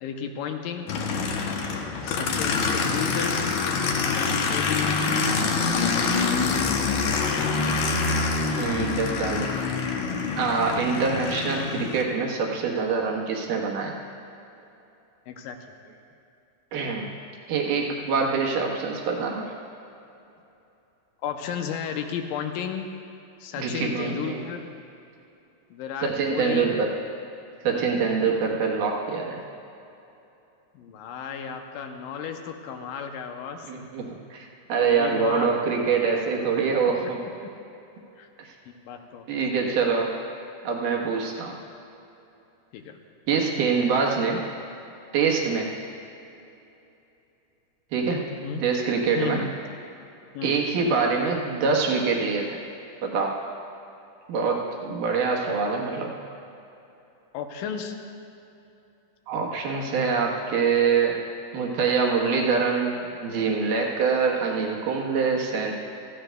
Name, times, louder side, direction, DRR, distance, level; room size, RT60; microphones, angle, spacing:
voice 1, 0.0-0.9 2.0-3.4 4.0-4.9 5.6-6.7 15.3-15.7 21.2-23.0 23.4-24.7 25.7-26.8 30.7-33.7 34.9-35.6 36.9-37.0 37.2-37.6 38.2-38.3 38.9-39.3 39.5-39.8 42.7-43.0 48.3-48.6 49.2-49.5 50.3-50.6 57.3-58.0, left 7 dB, 85° left, 5 dB, 2.4 m, -34 dB
Aircraft, 0.9-12.0, left 4 dB, 70° left, 2.0 m, -25 dB
voice 2, 8.5-9.6 10.3-14.0 16.7-17.1 17.5-19.5 23.6-24.5 26.0-26.9 27.6-29.4 33.7-37.2 38.4-38.5 39.3-40.2 40.6-41.5 43.3-44.4 45.1-45.7 47.9-49.4 50.4-52.6 53.0-53.4 54.3-56.2 59.3-61.2 61.5-65.7, right 5 dB, 75° right, 0 dB, 2.8 m, -25 dB
17.5 x 14.5 x 2.3 m, 2.8 s
omnidirectional pair, 3.8 m